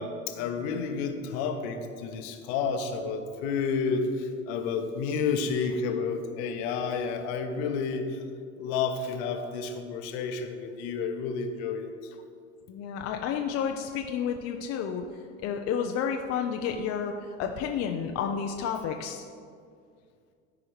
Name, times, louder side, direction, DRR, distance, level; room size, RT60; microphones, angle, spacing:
voice 1, 0.0-8.2 8.6-11.9, left 5 dB, 55° left, 6 dB, 0.9 m, -30 dB
voice 2, 12.7-15.0 15.4-19.3, left 7 dB, 40° left, 4 dB, 0.5 m, -31 dB
14.0 x 4.9 x 3.2 m, 2.2 s
figure-of-eight pair, 70°, 39 cm